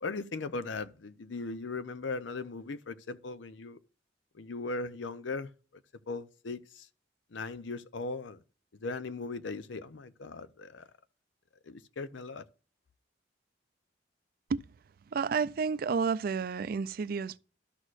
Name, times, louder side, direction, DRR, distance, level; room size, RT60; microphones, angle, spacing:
voice 1, 0.0-3.8 4.3-5.5 6.1-6.9 7.3-8.4 8.7-10.9 11.6-12.4, left 3 dB, 90° left, 0.6 m, -38 dB
voice 2, 15.1-17.4, right 5 dB, 50° right, 0.4 m, -30 dB
13.0 x 6.3 x 2.5 m
head